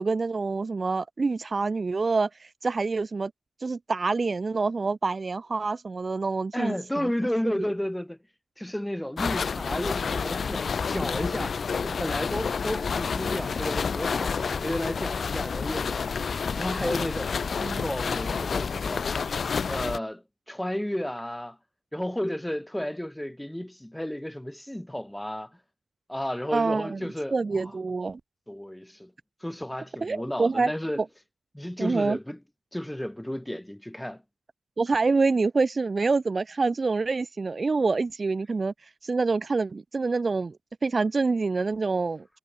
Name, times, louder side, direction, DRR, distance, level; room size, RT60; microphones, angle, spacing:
voice 1, 0.0-3.3 3.6-6.7 17.6-17.9 26.5-27.0 27.3-28.2 30.0-30.7 31.0-31.1 31.8-32.2 34.8-38.7 39.0-40.5 40.8-42.2, right 4 dB, 40° right, 2.0 m, -26 dB
voice 2, 6.5-8.2 8.6-11.6 11.8-16.0 16.6-17.3 17.7-19.1 19.7-21.6 21.9-25.6 26.1-27.7 28.5-29.1 29.4-31.0 31.5-32.4 32.7-34.2, left 1 dB, 5° left, 3.8 m, -32 dB
sound 1, 9.2-20.0, left 5 dB, 60° left, 3.2 m, -29 dB
wide cardioid pair, 90°, 0 cm